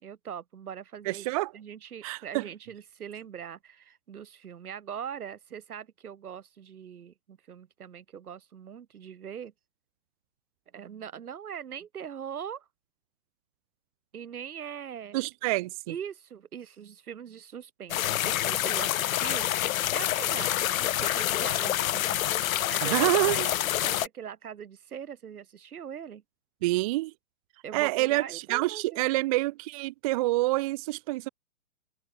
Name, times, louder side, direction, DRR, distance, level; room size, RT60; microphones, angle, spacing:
voice 1, 0.0-1.3 1.5-9.5 10.7-12.7 14.1-15.2 15.9-19.5 19.9-23.5 23.8-26.2 27.6-29.2, right 8 dB, 80° right, 2.2 m, -41 dB
voice 2, 1.0-1.5 2.0-2.5 15.1-15.9 22.8-23.5 26.6-27.1 27.7-31.3, right 20 dB, 25° right, 0.5 m, -27 dB
sound 1, 17.9-24.1, left 13 dB, 70° left, 0.6 m, -27 dB
hypercardioid pair, 130°, 44 cm